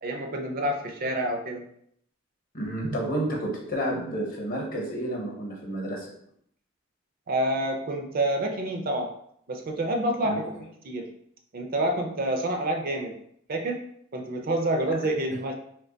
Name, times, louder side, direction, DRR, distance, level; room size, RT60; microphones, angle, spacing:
voice 1, 0.0-1.6 2.8-3.0 7.3-9.1 9.5-10.5 10.8-11.1 11.5-13.1 13.5-13.8 14.1-15.5, right 1 dB, 45° right, 3 dB, 0.5 m, -28 dB
voice 2, 2.5-6.2 10.2-10.4, right 1 dB, 45° left, 0 dB, 0.8 m, -30 dB
2.9 x 2.2 x 3.8 m, 0.70 s
head